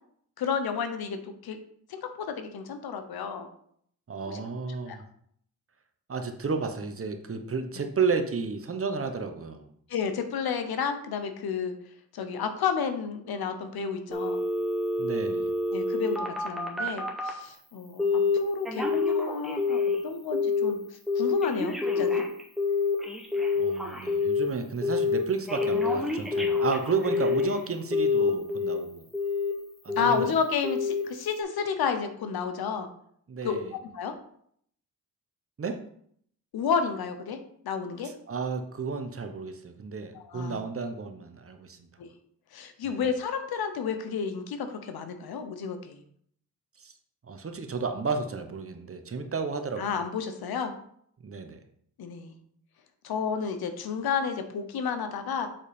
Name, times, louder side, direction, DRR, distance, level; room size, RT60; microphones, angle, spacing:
voice 1, 0.4-1.6 1.9-3.5 4.3-4.4 4.9-5.0 9.9-11.7 12.1-14.4 15.7-20.8 21.1-22.2 30.0-32.9 33.4-33.6 33.9-34.1 36.5-37.4 37.6-38.1 40.1-40.6 42.0-42.1 42.5-46.0 49.8-50.7 52.0-52.3 53.0-55.5, left 6 dB, 75° left, 8 dB, 1.0 m, -31 dB
voice 2, 4.1-5.0 6.1-9.7 15.0-15.5 23.5-29.1 29.8-30.3 33.3-33.7 35.6-35.8 38.0-41.8 42.8-43.0 46.8-46.9 47.2-50.0 51.2-51.6, right 4 dB, 35° right, 6 dB, 1.1 m, -32 dB
Telephone, 14.1-17.4 18.0-18.4 18.6-20.0 20.3-20.7 21.1-24.5 24.8-25.2 25.5-27.5 27.9-28.8 29.1-29.5 29.9-30.3 30.6-31.0 31.4-31.5, left 4 dB, ahead, 1.6 m, -27 dB
7.4 x 4.1 x 5.1 m, 0.66 s
cardioid pair, 75°, 37 cm